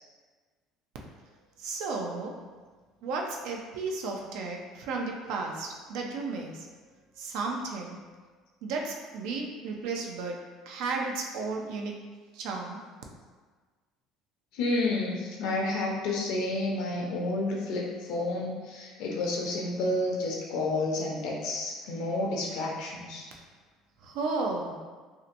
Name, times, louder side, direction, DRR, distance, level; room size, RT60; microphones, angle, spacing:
voice 1, 1.6-2.4 3.0-6.7 7.2-8.0 8.6-12.1 12.3-12.8 24.0-24.8, right 3 dB, 80° right, 1 dB, 0.4 m, -34 dB
voice 2, 14.5-23.3, left 2 dB, 75° left, -1 dB, 0.6 m, -30 dB
2.7 x 2.1 x 2.5 m, 1.4 s
supercardioid pair, 105°, 0 cm